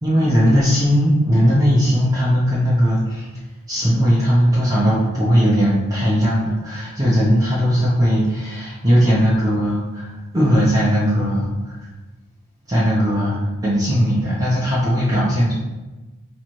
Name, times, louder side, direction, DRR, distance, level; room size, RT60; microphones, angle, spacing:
voice 1, 0.0-3.3 3.7-11.7 12.7-15.5, equal, 15° right, -9 dB, 0.8 m, -18 dB
3.2 x 2.9 x 4.5 m, 1.1 s
head